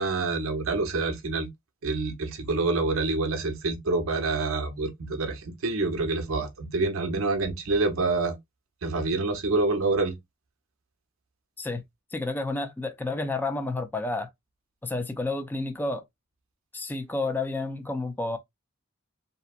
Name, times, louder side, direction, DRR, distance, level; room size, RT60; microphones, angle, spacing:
voice 1, 0.0-1.5 1.8-8.4 8.8-10.1, right 3 dB, 85° right, 0.7 m, -27 dB
voice 2, 12.1-14.3 14.8-16.0 16.7-18.4, left 2 dB, 10° left, 0.4 m, -30 dB
2.7 x 2.1 x 2.4 m
head